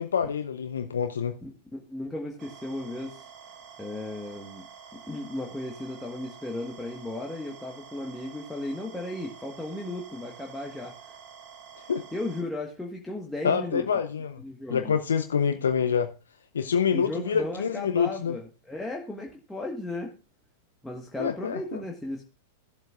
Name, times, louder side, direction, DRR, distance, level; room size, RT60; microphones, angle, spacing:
voice 1, 0.0-1.4 11.9-12.0 13.4-14.4 14.7-16.1 16.5-18.4 21.2-21.6, left 7 dB, 75° left, 0.6 m, -26 dB
voice 2, 1.4-3.3 3.8-4.6 4.9-11.2 11.7-13.8 14.4-15.0 16.9-20.1 20.8-22.3, left 2 dB, 5° left, 1.3 m, -35 dB
sound 1, 2.4-12.4, right 7 dB, 50° right, 1.5 m, -48 dB
16.5 x 7.6 x 2.4 m
figure-of-eight pair, 100°, 0 cm